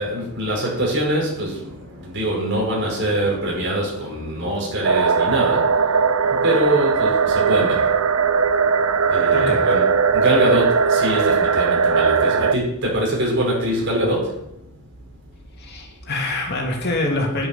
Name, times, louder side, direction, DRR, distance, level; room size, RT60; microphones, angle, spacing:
voice 1, 0.0-14.8 15.6-15.7, right 1 dB, 55° right, -2 dB, 5.4 m, -24 dB
sound 1, 4.8-12.6, right 5 dB, 70° right, 0.6 m, -18 dB
voice 2, 15.6-17.5, left 2 dB, 50° left, 0 dB, 2.7 m, -25 dB
10.5 x 10.5 x 5.8 m, 0.82 s
head